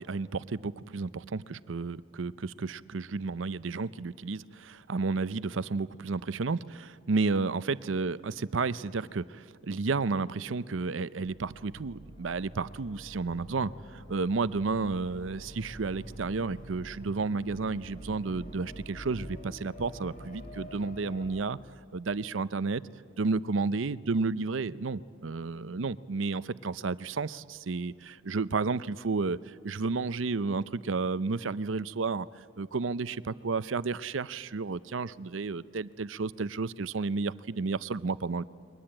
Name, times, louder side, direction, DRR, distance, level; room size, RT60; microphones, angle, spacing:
voice 1, 0.0-21.6 21.9-22.8 23.2-32.3 32.6-38.4, right 4 dB, 85° right, 17 dB, 0.6 m, -32 dB
sound 1, 11.2-21.4, equal, 45° left, 3.3 m, -46 dB
29.5 x 22.5 x 8.9 m, 2.2 s
head